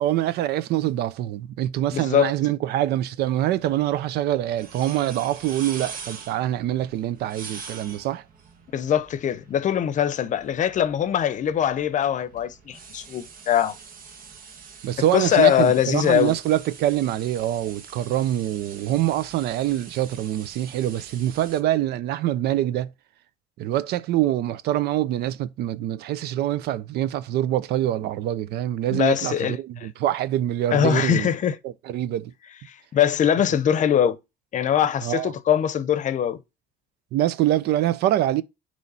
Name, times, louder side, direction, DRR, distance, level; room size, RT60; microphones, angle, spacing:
voice 1, 0.0-8.2 14.8-22.9 23.6-31.3 31.6-32.3 35.0-35.3 37.1-38.4, right 13 dB, 75° right, 0.5 m, -25 dB
voice 2, 1.9-2.3 8.7-13.8 15.1-16.3 28.9-29.9 30.7-31.6 32.7-34.2 34.5-36.4, left 9 dB, 45° left, 0.7 m, -22 dB
sound 1, 3.6-21.6, right 5 dB, 55° right, 1.4 m, -44 dB
9.4 x 3.2 x 4.0 m
cardioid pair, 110°, 17 cm